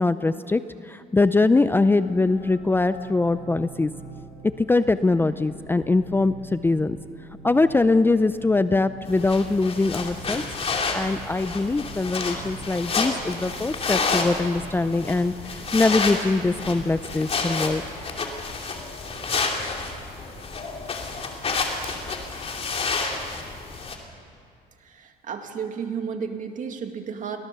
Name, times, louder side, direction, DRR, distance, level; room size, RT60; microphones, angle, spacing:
voice 1, 0.0-3.9 4.4-7.0 7.4-10.4 10.9-17.8, left 3 dB, 15° left, 12 dB, 0.5 m, -22 dB
sound 1, 1.3-17.7, right 5 dB, 85° right, 5.3 m, -46 dB
sound 2, 9.1-24.0, left 4 dB, 35° left, 2.7 m, -30 dB
voice 2, 24.8-27.4, right 6 dB, 50° right, 5 dB, 2.2 m, -32 dB
24.0 x 18.0 x 6.8 m, 2.5 s
cardioid pair, 110°, 17 cm